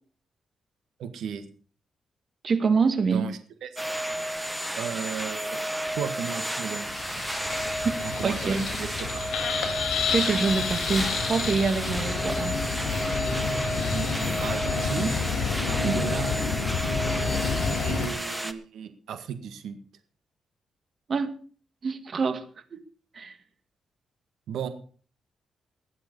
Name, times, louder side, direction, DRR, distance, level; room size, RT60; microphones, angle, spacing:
voice 1, 1.0-1.4 3.1-3.8 4.8-5.6 5.9-7.0 8.0-9.2 13.9-15.1 15.6-16.4 17.8-19.8 24.5-24.7, right 8 dB, 85° right, 9 dB, 1.7 m, -35 dB
voice 2, 2.4-3.2 7.8-7.9 8.2-8.7 10.1-12.5 15.8-16.0 21.1-21.4 21.8-22.5 22.7-22.8 23.1-23.4, right 5 dB, 45° right, 10 dB, 1.8 m, -25 dB
sound 1, 3.8-18.5, equal, 5° right, 1.2 m, -32 dB
sound 2, 6.8-18.1, left 5 dB, 75° left, 3.9 m, -29 dB
20.5 x 8.0 x 5.4 m, 0.42 s
cardioid pair, 100°, 0 cm